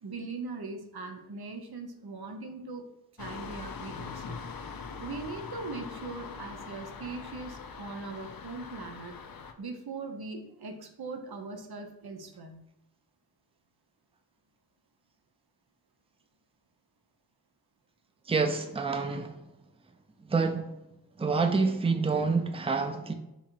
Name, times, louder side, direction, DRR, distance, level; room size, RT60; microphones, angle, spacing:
voice 1, 0.0-2.8 3.2-4.5 5.0-9.2 9.6-12.6, right 3 dB, 80° right, 5 dB, 0.6 m, -40 dB
sound 1, 3.2-9.5, left 5 dB, 65° left, 0.5 m, -42 dB
voice 2, 18.3-19.4 20.2-20.7 21.2-23.1, right 4 dB, 15° right, 5 dB, 0.4 m, -27 dB
3.7 x 2.9 x 4.4 m, 0.88 s
wide cardioid pair, 60°, 37 cm